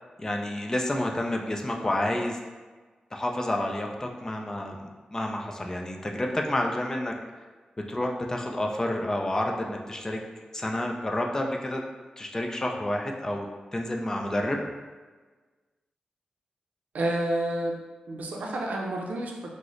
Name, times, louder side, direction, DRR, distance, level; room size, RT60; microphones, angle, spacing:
voice 1, 0.2-2.4 3.1-7.1 7.9-10.2 10.5-11.8 12.2-13.5 13.7-14.6, left 1 dB, 20° left, 1 dB, 0.3 m, -29 dB
voice 2, 16.9-17.8 18.1-19.5, right 1 dB, 80° right, 0 dB, 0.4 m, -29 dB
3.8 x 2.0 x 3.0 m, 1.4 s
wide cardioid pair, 110°, 3 cm